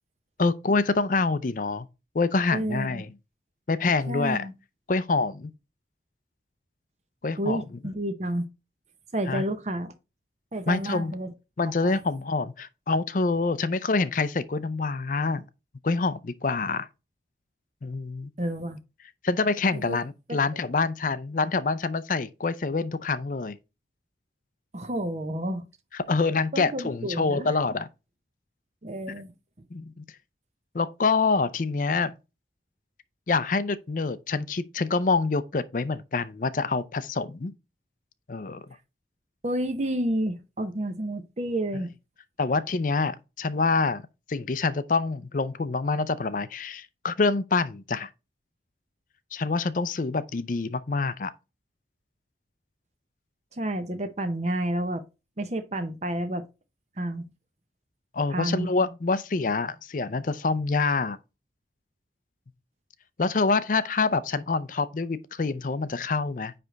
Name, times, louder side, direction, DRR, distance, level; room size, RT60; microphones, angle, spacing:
voice 1, 0.4-1.9 2.1-3.1 3.7-4.5 4.9-5.5 7.2-7.6 9.3-9.4 10.7-11.1 11.6-15.4 15.8-16.9 17.8-18.3 19.2-23.6 25.9-27.9 29.7-30.0 30.7-32.1 33.3-37.5 38.3-38.6 42.4-44.0 44.3-48.1 49.3-51.3 58.1-61.2 63.2-66.5, left 4 dB, 45° left, 0.5 m, -26 dB
voice 2, 2.5-3.0 4.1-4.5 7.4-8.4 9.1-9.9 10.5-11.3 11.8-12.0 18.4-18.8 19.7-20.0 20.3-20.4 24.7-25.6 26.5-27.5 28.8-29.3 39.4-41.9 53.5-55.0 55.4-56.4 57.0-57.2 58.3-58.7, right 1 dB, 35° right, 0.7 m, -30 dB
9.6 x 3.4 x 3.9 m
head